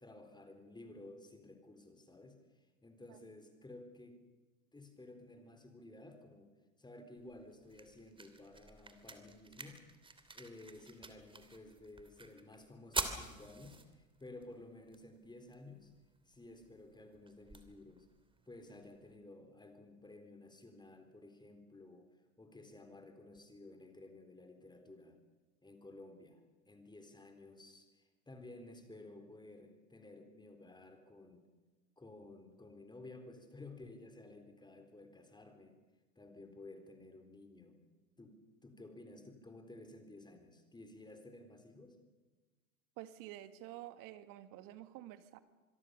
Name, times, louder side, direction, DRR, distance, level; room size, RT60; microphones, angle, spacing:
voice 1, 0.0-4.2 4.7-6.5 6.8-9.8 10.3-15.9 16.3-18.1 18.5-22.1 22.4-25.2 25.6-31.5 32.0-35.8 36.2-37.8 38.2-42.0, left 2 dB, 10° left, 6 dB, 3.9 m, -54 dB
sound 1, 7.2-19.2, right 3 dB, 10° right, 2.9 m, -48 dB
voice 2, 43.0-45.4, right 14 dB, 50° right, 11 dB, 2.1 m, -50 dB
26.5 x 21.5 x 6.9 m, 1.3 s
hypercardioid pair, 90°, 42 cm